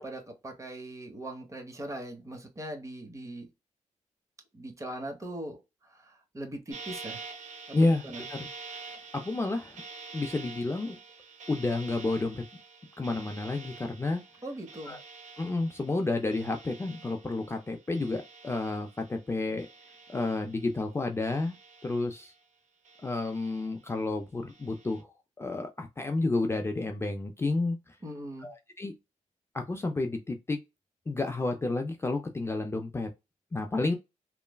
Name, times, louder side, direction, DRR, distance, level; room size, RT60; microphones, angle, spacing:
voice 1, 0.0-3.5 4.5-5.6 5.9-7.2 7.7-7.8 8.0-8.3 14.4-15.0 28.0-28.5, right 1 dB, 25° right, 0.9 m, -40 dB
sound 1, 6.7-19.3 19.6-20.8 21.2-22.4 22.8-23.9 24.5-25.0, right 4 dB, 70° right, 0.8 m, -47 dB
voice 2, 7.7-8.5 9.1-9.8 10.1-11.0 11.5-12.4 13.0-14.2 14.9-15.0 15.4-19.7 20.1-21.6 21.8-22.3 23.0-25.1 25.4-27.9 28.4-29.0 29.5-30.6 31.1-33.1 33.5-33.9, left 2 dB, 20° left, 0.4 m, -30 dB
3.1 x 2.1 x 2.2 m
cardioid pair, 95°, 13 cm